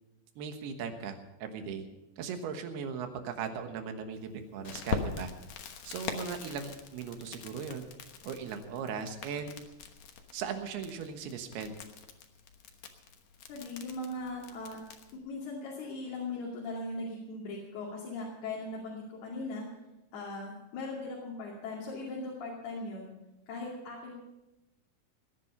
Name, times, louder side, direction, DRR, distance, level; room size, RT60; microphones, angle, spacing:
voice 1, 0.4-1.8 2.2-5.3 5.8-7.9 8.2-9.6 10.3-11.7, right 6 dB, 85° right, 6 dB, 3.3 m, -38 dB
Crackle, 4.6-15.2, left 6 dB, 60° left, 2.1 m, -43 dB
voice 2, 13.5-14.8 15.1-19.7 20.1-23.1 23.5-24.2, left 2 dB, 80° left, -4 dB, 4.6 m, -39 dB
18.5 x 11.0 x 5.6 m, 0.96 s
omnidirectional pair, 4.5 m